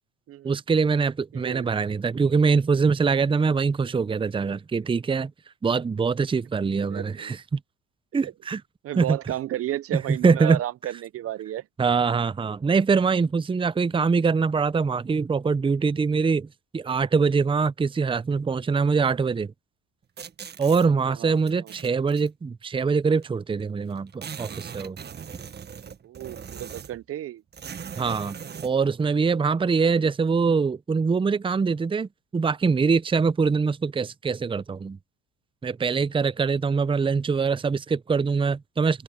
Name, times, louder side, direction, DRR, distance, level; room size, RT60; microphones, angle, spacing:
voice 1, 0.4-5.3 5.6-7.6 8.1-8.6 9.0-9.2 9.9-10.6 11.8-19.5 20.6-25.0 28.0-28.3 28.6-35.0 35.6-39.0, right 5 dB, 15° right, 0.7 m, -23 dB
voice 2, 1.3-1.7 6.9-7.3 8.2-8.3 8.8-11.7 21.1-21.9 25.8-27.4, right 13 dB, 50° right, 0.8 m, -33 dB
sound 1, 20.2-20.9 21.5-22.3 23.2-23.3 23.6-23.7 23.9-27.1 27.5-28.8, right 7 dB, 35° right, 1.6 m, -39 dB
open air
supercardioid pair, 75°, 30 cm